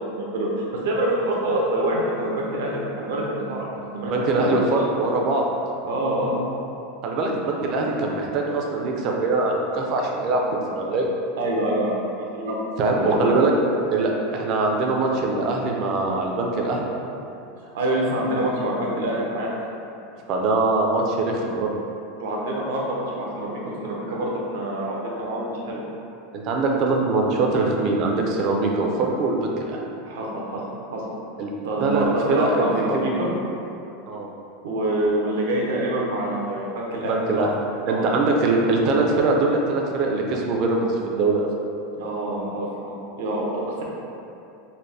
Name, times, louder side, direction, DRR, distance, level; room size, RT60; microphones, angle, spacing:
voice 1, 0.2-4.6 5.8-6.4 11.4-12.6 12.9-13.4 17.6-19.5 22.2-25.9 30.0-30.6 30.9-31.0 31.6-33.3 34.6-37.2 37.9-38.1 41.9-43.8, right 1 dB, 85° right, -3 dB, 0.7 m, -26 dB
voice 2, 4.1-5.5 7.0-11.1 12.8-13.5 13.9-16.9 20.3-21.7 26.3-29.8 31.4-31.5 31.8-33.0 34.1-34.3 37.0-37.5 37.9-41.5, right 3 dB, 35° right, 0 dB, 0.4 m, -22 dB
4.1 x 2.1 x 3.3 m, 2.7 s
supercardioid pair, 165°, 0 cm